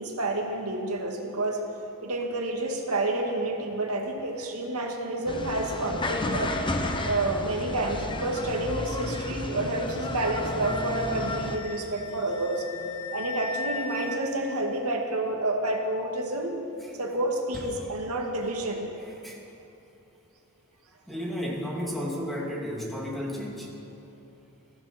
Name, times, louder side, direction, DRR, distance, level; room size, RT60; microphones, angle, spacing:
voice 1, 0.0-1.7 2.0-6.5 7.0-12.7 13.1-16.6 17.0-18.9, right 2 dB, 85° right, 1 dB, 2.2 m, -29 dB
sound 1, 5.3-11.6, left 1 dB, 20° left, 0.9 m, -32 dB
Wind instrument woodwind instrument, 10.6-14.2, left 4 dB, 75° left, 1.3 m, -38 dB
voice 2, 21.1-23.7, equal, ahead, -4 dB, 2.9 m, -33 dB
21.0 x 15.0 x 4.5 m, 2.9 s
head